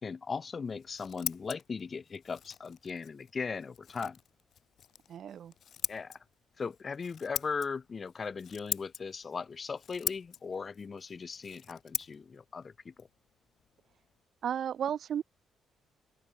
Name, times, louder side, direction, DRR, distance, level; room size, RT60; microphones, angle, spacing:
voice 1, 0.0-4.2 5.9-6.2 6.6-13.1, left 5 dB, 40° left, 1.6 m, -38 dB
Scissors, 0.6-14.2, left 9 dB, 60° left, 1.3 m, -43 dB
voice 2, 5.1-5.5 14.4-15.2, right 9 dB, 60° right, 6.2 m, -33 dB
open air
cardioid pair, 90°, 0 cm